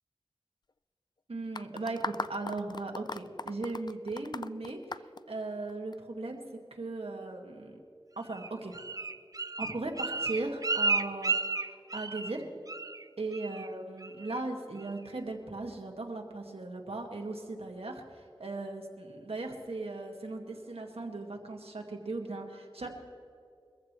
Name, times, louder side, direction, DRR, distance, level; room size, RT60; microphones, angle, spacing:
voice 1, 1.3-6.4 6.7-7.8 8.2-8.8 9.6-12.5 13.2-22.9, right 2 dB, 85° right, 2 dB, 1.8 m, -38 dB
sound 1, 1.5-5.9, left 4 dB, 45° left, 0.4 m, -38 dB
Bird, 8.3-12.4 12.7-13.0 13.3-13.7 14.0-14.4 14.8-14.9, right 3 dB, 40° right, 0.5 m, -32 dB
23.0 x 15.0 x 3.1 m, 2.4 s
wide cardioid pair, 55°, 10 cm